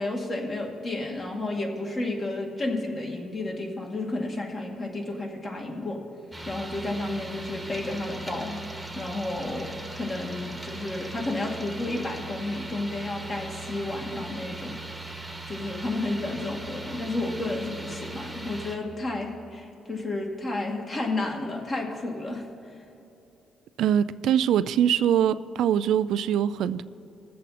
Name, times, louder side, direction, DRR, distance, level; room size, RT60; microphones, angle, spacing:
voice 1, 0.0-6.0 6.5-14.8 15.5-22.5, left 2 dB, 35° left, 2.2 m, -31 dB
sound 1, 6.3-18.8, right 2 dB, ahead, 1.4 m, -39 dB
voice 2, 23.8-26.8, right 9 dB, 80° right, 0.3 m, -23 dB
20.5 x 7.6 x 4.2 m
cardioid pair, 90°, 0 cm